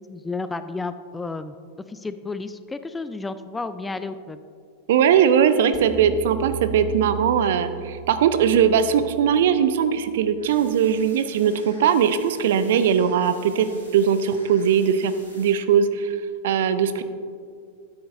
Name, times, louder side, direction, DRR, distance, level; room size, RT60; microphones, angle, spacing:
voice 1, 0.0-1.5 1.9-4.4, left 3 dB, 10° left, 11 dB, 0.3 m, -32 dB
voice 2, 4.9-16.2 16.4-17.0, right 8 dB, 55° right, 12 dB, 0.5 m, -20 dB
sound 1, 5.7-11.0, right 7 dB, 25° right, 1.7 m, -37 dB
sound 2, 10.4-15.5, right 1 dB, 80° right, 2.2 m, -49 dB
12.5 x 9.4 x 2.6 m, 2.3 s
figure-of-eight pair, 90°, 0 cm